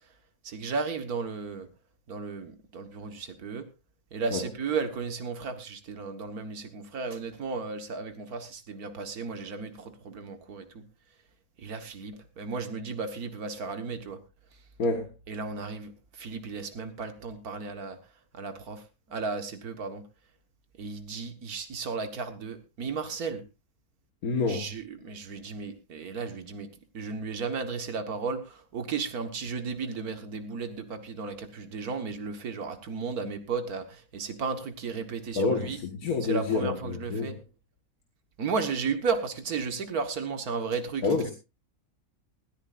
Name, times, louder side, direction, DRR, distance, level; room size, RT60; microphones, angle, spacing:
voice 1, 0.4-1.7 2.1-3.7 4.1-10.8 11.6-14.2 15.3-18.0 18.3-18.8 19.1-20.0 20.8-23.4 24.5-26.7 26.9-35.8 36.2-37.4 38.4-41.3, right 5 dB, 90° right, 8 dB, 1.9 m, -34 dB
voice 2, 14.8-15.1 24.2-24.7 35.4-37.3 41.0-41.3, left 4 dB, 80° left, 5 dB, 2.0 m, -28 dB
19.5 x 14.0 x 2.5 m, 0.27 s
omnidirectional pair, 1.5 m